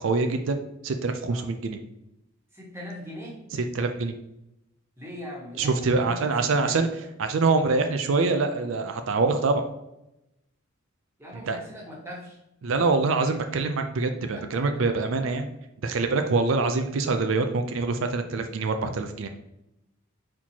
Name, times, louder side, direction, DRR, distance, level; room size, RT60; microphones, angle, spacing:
voice 1, 0.0-1.8 3.5-4.1 5.6-6.9 7.2-9.6 11.5-11.6 12.6-15.5 15.8-19.3, right 3 dB, 70° right, 7 dB, 0.4 m, -25 dB
voice 2, 2.5-3.4 5.0-6.9 11.2-12.4 14.3-14.8, left 1 dB, 10° right, -4 dB, 1.3 m, -41 dB
4.3 x 4.3 x 2.8 m, 0.87 s
head